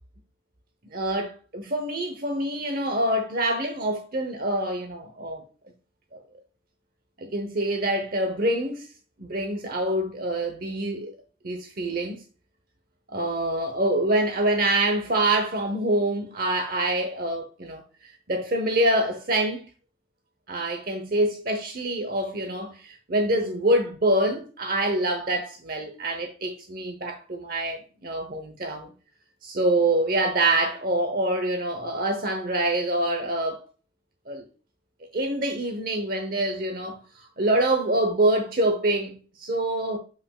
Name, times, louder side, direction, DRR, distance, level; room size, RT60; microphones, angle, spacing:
voice 1, 0.9-5.4 6.1-6.2 7.2-8.9 9.2-11.1 11.4-12.2 13.1-19.6 20.5-28.9 29.4-33.7 34.3-34.4 35.1-40.0, right 1 dB, 55° right, 0.9 m, -26 dB
7.7 x 5.9 x 2.3 m
head